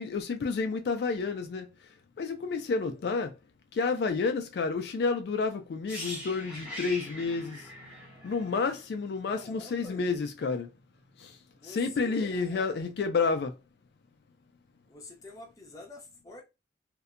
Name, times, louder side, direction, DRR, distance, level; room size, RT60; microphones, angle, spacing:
voice 1, 0.0-1.7 2.2-3.4 3.7-7.7 8.2-10.7 11.2-11.4 11.6-13.5, left 4 dB, 70° left, 0.3 m, -30 dB
voice 2, 2.8-3.2 9.3-10.3 11.5-12.9 14.9-16.4, left 2 dB, 20° left, 0.7 m, -47 dB
sound 1, 5.9-9.7 10.0-10.2, equal, 5° right, 0.9 m, -42 dB
2.6 x 2.1 x 2.4 m
head